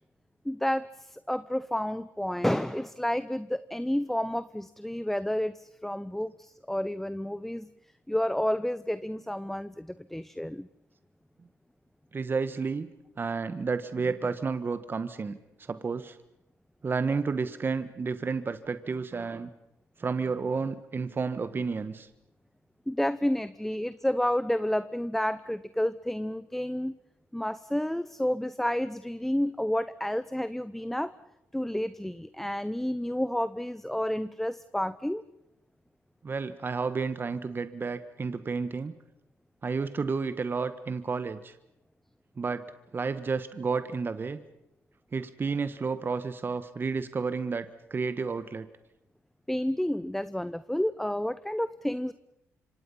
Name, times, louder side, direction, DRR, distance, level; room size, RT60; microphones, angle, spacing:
voice 1, 0.4-7.7 8.1-10.7 22.9-27.0 27.3-31.1 31.5-35.2 49.5-52.1, left 1 dB, 5° left, 14 dB, 0.8 m, -30 dB
voice 2, 12.1-12.9 13.2-16.2 16.8-19.5 20.0-22.1 36.2-38.9 39.6-41.5 42.4-42.6 42.9-44.4 45.1-48.7, right 4 dB, 40° right, 11 dB, 1.4 m, -31 dB
27.0 x 25.0 x 5.7 m, 0.86 s
supercardioid pair, 65°, 6 cm